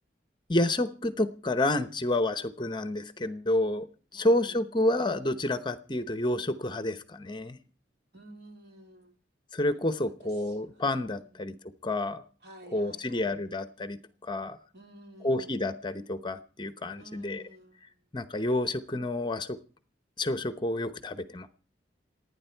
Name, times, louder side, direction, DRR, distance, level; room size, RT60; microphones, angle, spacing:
voice 1, 0.5-3.9 4.1-7.6 9.5-11.6 11.8-12.2 12.7-14.6 15.2-17.4 18.1-19.6 20.2-21.5, left 1 dB, 25° left, 12 dB, 0.8 m, -29 dB
voice 2, 4.1-4.7 8.1-9.1 9.8-11.7 12.4-13.5 14.7-15.7 17.0-17.8, right 1 dB, 60° right, 3 dB, 3.4 m, -52 dB
28.0 x 9.8 x 4.5 m, 0.41 s
head